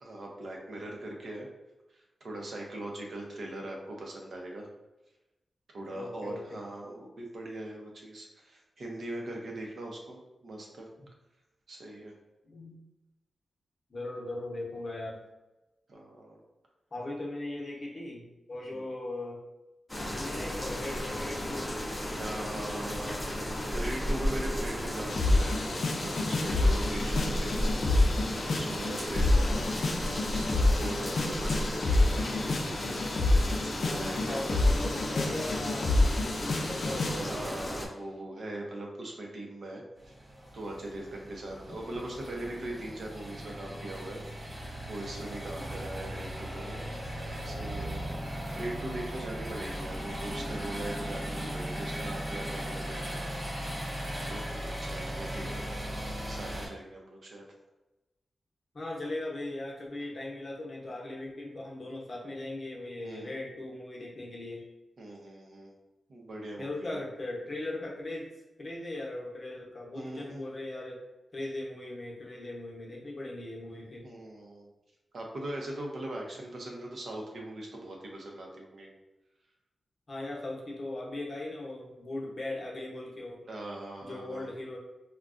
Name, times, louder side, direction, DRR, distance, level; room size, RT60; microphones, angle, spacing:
voice 1, 0.0-1.5 1.9-4.7 5.7-10.9 11.7-12.1 15.9-16.4 18.7-18.9 22.2-23.2 23.7-29.5 30.2-33.0 33.8-34.6 36.9-40.1 40.5-44.2 44.9-46.8 47.4-53.2 54.3-55.8 56.3-57.4 60.0-60.1 63.0-63.3 65.0-65.7 66.1-67.1 69.9-70.4 74.0-74.7 75.1-78.9 83.4-84.5, right 1 dB, 60° right, -1 dB, 0.7 m, -41 dB
voice 2, 5.9-6.6 11.0-11.1 12.4-12.8 13.9-15.2 16.9-19.4 20.0-21.7 29.3-29.7 33.8-37.6 45.5-45.9 58.7-64.6 66.6-68.3 68.6-71.0 71.3-74.1 80.1-83.4 84.0-84.8, left 2 dB, 40° left, -3 dB, 0.8 m, -39 dB
sound 1, 19.9-37.9, equal, 10° left, 0.6 m, -34 dB
sound 2, 25.1-37.4, left 2 dB, 70° left, 0.4 m, -28 dB
sound 3, 40.0-56.7, equal, 35° right, 1.2 m, -38 dB
3.6 x 2.2 x 2.5 m, 1.0 s
wide cardioid pair, 115°, 0 cm